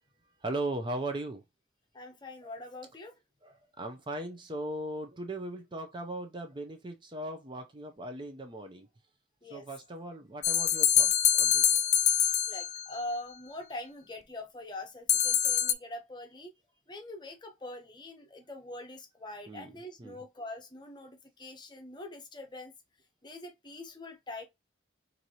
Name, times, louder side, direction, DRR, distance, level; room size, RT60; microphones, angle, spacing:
voice 1, 0.4-1.4 2.4-2.5 3.4-8.9 9.5-11.9 19.5-19.7 20.0-20.2, right 1 dB, 25° right, 0.5 m, -38 dB
voice 2, 1.9-3.2 9.4-9.7 12.5-16.5 16.9-22.7 23.2-24.4, left 1 dB, 25° left, 0.8 m, -43 dB
sound 1, 10.4-13.0 15.1-15.7, left 10 dB, 40° left, 0.4 m, -25 dB
4.5 x 2.6 x 2.7 m
head